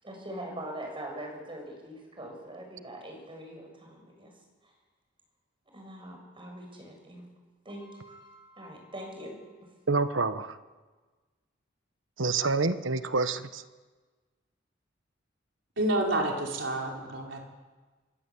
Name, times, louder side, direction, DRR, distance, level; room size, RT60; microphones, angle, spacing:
voice 1, 0.0-4.3 4.6-4.7 5.7-7.2 7.7-9.4, right 1 dB, 25° right, 2 dB, 7.1 m, -42 dB
voice 2, 9.9-10.6 12.2-13.6, right 3 dB, 85° right, 11 dB, 1.2 m, -27 dB
voice 3, 15.8-17.4, right 1 dB, 65° right, 0 dB, 5.0 m, -29 dB
26.5 x 23.5 x 8.6 m, 1.4 s
head